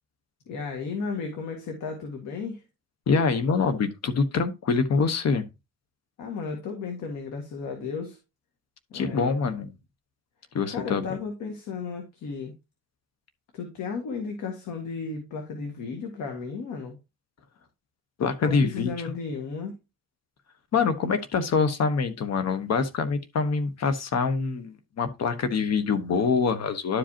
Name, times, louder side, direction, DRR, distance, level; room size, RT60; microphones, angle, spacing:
voice 1, 0.5-2.6 6.2-8.2 8.9-9.3 10.7-12.5 13.5-17.0 18.4-19.8, left 5 dB, 80° left, 1.9 m, -34 dB
voice 2, 3.1-5.5 8.9-9.7 10.5-11.2 18.2-18.9 20.7-27.0, left 5 dB, 60° left, 1.2 m, -25 dB
11.5 x 5.1 x 2.8 m
cardioid pair, 90°, 30 cm